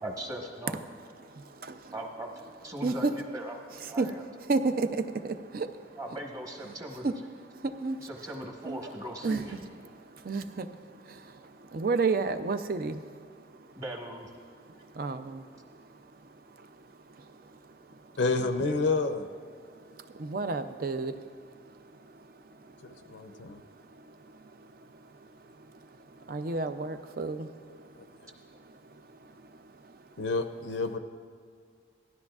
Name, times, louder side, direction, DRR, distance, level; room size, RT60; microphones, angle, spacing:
voice 1, 0.0-0.8 1.9-2.3 2.6-3.6 3.9-4.2 6.0-7.1 8.0-9.6 13.8-14.3 18.4-18.8, right 1 dB, 20° right, 1 dB, 1.2 m, -39 dB
voice 2, 4.5-5.7 7.0-7.1 7.8-8.0 8.7-8.8 9.2-9.4 10.3-10.7 11.7-13.0 15.0-15.4 20.2-21.1 26.3-27.5, right 3 dB, 50° right, 10 dB, 0.5 m, -29 dB
voice 3, 18.2-19.3 22.8-23.6 30.2-31.0, left 3 dB, 85° left, 8 dB, 0.6 m, -29 dB
17.0 x 13.0 x 2.4 m, 2.1 s
head